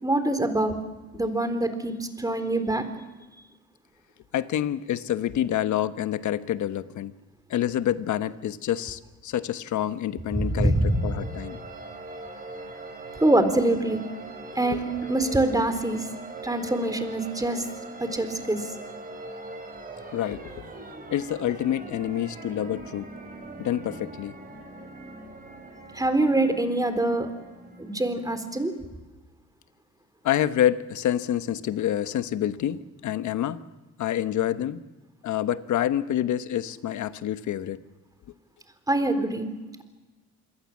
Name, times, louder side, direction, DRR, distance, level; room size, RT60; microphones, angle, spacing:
voice 1, 0.0-0.7 1.1-2.8 10.3-11.2 13.2-14.0 14.6-16.0 16.4-17.6 18.0-18.6 25.9-27.3 27.8-28.7 38.9-39.5, right 2 dB, 10° right, 9 dB, 3.9 m, -24 dB
voice 2, 4.3-7.1 7.5-11.6 14.6-14.8 20.1-20.7 21.1-23.1 23.6-24.3 30.2-33.6 34.0-34.8 35.2-37.8, left 11 dB, 75° left, 12 dB, 1.2 m, -27 dB
sound 1, 10.2-28.8, right 2 dB, 30° right, 5.7 m, -42 dB
27.0 x 21.5 x 7.4 m, 1.2 s
cardioid pair, 90°, 30 cm